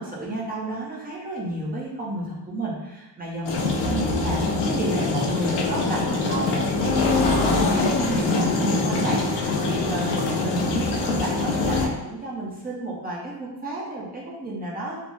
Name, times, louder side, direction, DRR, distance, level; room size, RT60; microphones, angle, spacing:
voice 1, 0.0-4.4 4.7-9.2 9.6-15.0, right 2 dB, 20° right, -5 dB, 0.4 m, -31 dB
sound 1, 3.4-11.9, left 3 dB, 65° left, 0.5 m, -23 dB
3.1 x 2.3 x 2.4 m, 1.0 s
cardioid pair, 170°, 45 cm